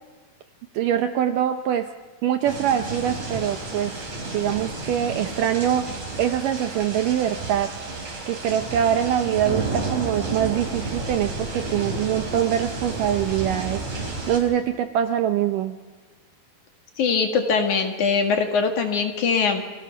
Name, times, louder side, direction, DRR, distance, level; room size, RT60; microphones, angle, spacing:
voice 1, 0.7-1.9 2.2-4.0 4.3-7.7 8.3-15.7, right 10 dB, 75° right, 7 dB, 2.1 m, -24 dB
sound 1, 2.4-14.4, right 3 dB, 45° right, 5.3 m, -31 dB
voice 2, 17.0-19.7, left 5 dB, 55° left, 4 dB, 2.9 m, -22 dB
30.0 x 22.5 x 6.0 m, 1.4 s
omnidirectional pair, 4.5 m